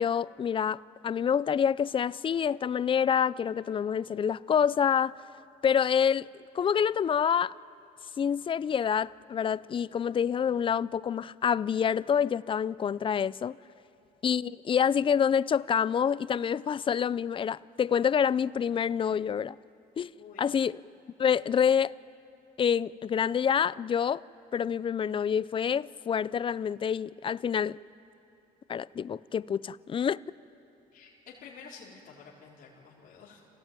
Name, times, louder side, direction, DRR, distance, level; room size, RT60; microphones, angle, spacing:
voice 1, 0.0-5.1 5.6-6.3 6.5-7.5 8.2-13.6 14.2-19.6 20.0-20.1 20.4-20.8 21.2-21.9 22.6-24.2 24.5-27.8 28.7-30.2, left 7 dB, 30° left, 0.4 m, -27 dB
voice 2, 20.2-20.6 30.9-33.4, left 5 dB, 55° left, 4.3 m, -50 dB
27.5 x 15.5 x 9.0 m
cardioid pair, 110°, 17 cm